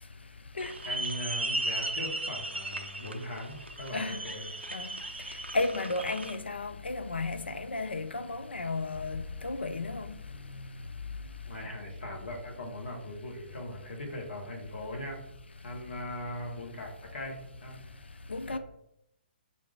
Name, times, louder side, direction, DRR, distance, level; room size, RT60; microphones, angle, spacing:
sound 1, 0.6-6.4, right 2 dB, 80° right, 0.4 m, -36 dB
voice 1, 0.8-4.5 11.5-15.2 15.6-17.8 18.5-18.6, left 1 dB, 60° left, 1.1 m, -40 dB
voice 2, 5.5-10.1 18.3-18.6, left 3 dB, 75° left, 0.4 m, -33 dB
4.8 x 2.6 x 3.3 m
figure-of-eight pair, 125°, 6 cm